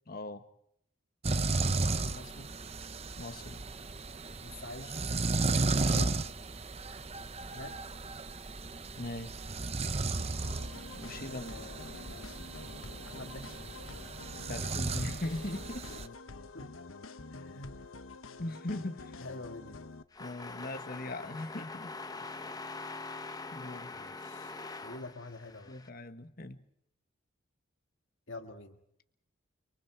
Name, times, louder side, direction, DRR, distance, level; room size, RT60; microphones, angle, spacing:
voice 1, 0.1-0.5 3.2-3.7 5.9-6.2 9.0-9.4 10.9-11.6 14.4-16.0 18.4-19.2 20.2-22.3 23.5-24.0 25.7-26.6, left 2 dB, 45° left, 8 dB, 1.5 m, -40 dB
sound 1, 1.2-16.1, right 3 dB, 30° right, 0.8 m, -34 dB
voice 2, 1.8-2.5 4.4-5.1 7.5-7.8 11.2-12.0 13.0-13.6 16.5-16.7 17.3-17.9 19.2-19.9 23.9-25.8 28.3-28.8, left 2 dB, 70° left, 4 dB, 1.8 m, -46 dB
sound 2, 10.4-20.0, left 3 dB, 85° left, 1.1 m, -48 dB
sound 3, 20.1-25.9, left 3 dB, 20° left, 0.8 m, -43 dB
30.0 x 23.5 x 4.7 m, 0.74 s
head